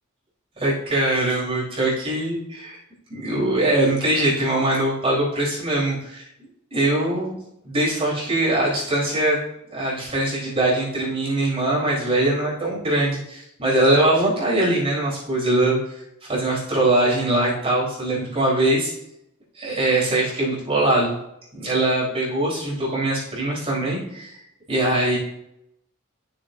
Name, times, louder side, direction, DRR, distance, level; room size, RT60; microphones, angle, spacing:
voice 1, 0.6-2.8 3.1-6.3 6.7-7.4 7.6-9.4 9.7-15.8 16.3-18.9 19.5-21.1 21.5-24.3 24.7-25.2, right 1 dB, 30° right, -7 dB, 3.9 m, -22 dB
13.5 x 6.9 x 2.7 m, 0.80 s
head